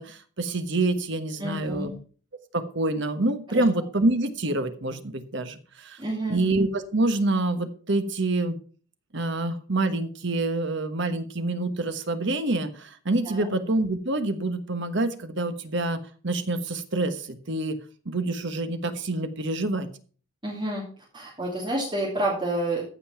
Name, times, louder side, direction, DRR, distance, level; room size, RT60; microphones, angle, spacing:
voice 1, 0.0-1.9 2.5-6.0 6.3-8.5 9.1-17.8 18.0-19.9, right 2 dB, 55° right, 9 dB, 1.3 m, -27 dB
voice 2, 1.4-2.0 3.5-3.6 6.0-6.4 13.2-13.5 20.4-20.8 21.1-22.8, right 1 dB, 25° right, -6 dB, 2.9 m, -29 dB
14.5 x 5.5 x 5.8 m, 0.41 s
head